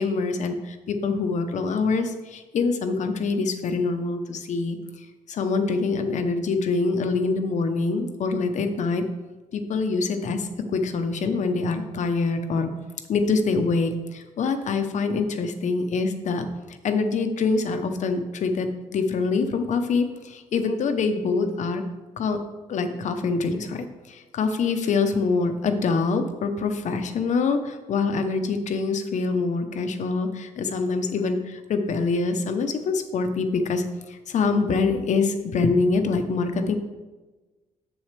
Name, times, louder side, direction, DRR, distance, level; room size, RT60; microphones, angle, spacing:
voice 1, 0.0-4.8 5.3-9.0 9.5-12.7 13.1-21.8 22.2-22.4 22.7-36.8, left 4 dB, 65° left, 7 dB, 0.8 m, -25 dB
7.2 x 7.2 x 3.3 m, 1.2 s
cardioid pair, 110°, 13 cm